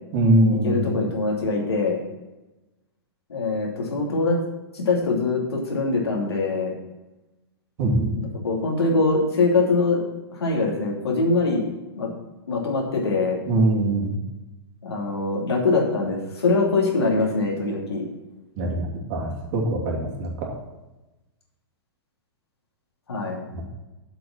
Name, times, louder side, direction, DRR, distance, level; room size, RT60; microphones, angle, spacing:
voice 1, 0.1-1.0 7.8-8.1 13.5-14.2 18.6-20.5, right 1 dB, 50° right, -1 dB, 2.9 m, -22 dB
voice 2, 0.6-2.0 3.3-4.3 4.7-6.7 8.2-10.0 10.3-11.6 12.0-12.1 12.5-13.4 14.8-18.0 23.1-23.4, left 3 dB, 85° left, -2 dB, 2.8 m, -23 dB
7.6 x 6.9 x 5.8 m, 1.0 s
hypercardioid pair, 110°, 13 cm